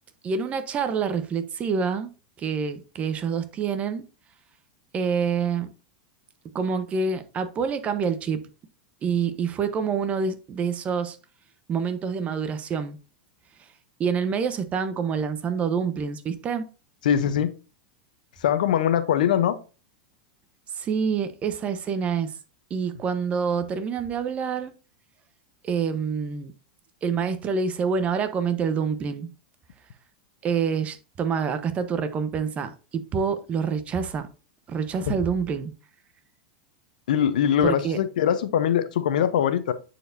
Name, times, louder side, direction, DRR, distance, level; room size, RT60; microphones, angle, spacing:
voice 1, 0.2-2.1 2.4-4.0 4.9-5.7 6.5-8.4 9.0-11.2 11.7-13.0 14.0-16.7 20.7-22.3 22.7-24.7 25.6-26.5 27.0-29.3 30.4-34.3 34.7-35.7 37.6-38.0, right 6 dB, 30° right, 0.9 m, -27 dB
voice 2, 17.0-17.5 18.4-19.6 37.1-39.7, left 9 dB, 75° left, 0.8 m, -22 dB
9.8 x 4.4 x 2.6 m
hypercardioid pair, 105°, 4 cm